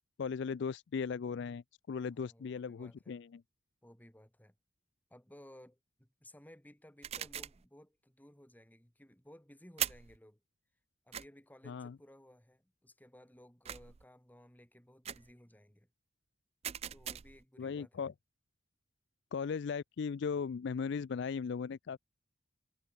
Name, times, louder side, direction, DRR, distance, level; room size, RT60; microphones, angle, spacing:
voice 1, 0.2-3.4 11.7-12.0 17.6-18.1 19.3-22.0, left 6 dB, 60° left, 0.4 m, -37 dB
voice 2, 1.9-3.2 3.8-4.6 5.1-10.4 11.0-15.9 16.9-18.1, left 1 dB, 10° left, 1.7 m, -58 dB
sound 1, 7.0-7.7 9.8-10.2 11.1-11.3 13.7-14.0 15.0-15.3 16.6-17.4, right 10 dB, 30° right, 0.4 m, -40 dB
head